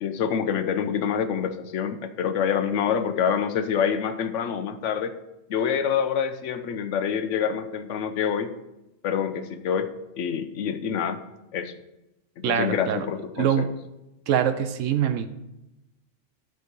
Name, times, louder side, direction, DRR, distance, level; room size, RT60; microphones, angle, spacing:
voice 1, 0.0-5.1 5.5-8.5 9.0-9.9 10.2-11.2 11.5-11.7 12.5-13.7, left 7 dB, 75° left, 9 dB, 1.0 m, -26 dB
voice 2, 12.4-13.1 13.4-13.7 14.3-15.3, right 9 dB, 80° right, 10 dB, 1.0 m, -24 dB
12.0 x 4.6 x 4.7 m, 0.94 s
omnidirectional pair, 1.3 m